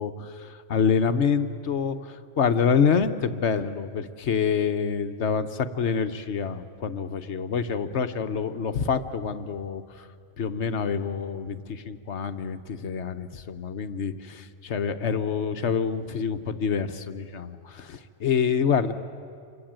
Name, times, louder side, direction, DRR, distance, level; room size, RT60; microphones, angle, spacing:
voice 1, 0.0-9.8 10.4-18.9, left 6 dB, 65° left, 10 dB, 1.3 m, -27 dB
28.0 x 24.0 x 8.9 m, 2.3 s
omnidirectional pair, 1.3 m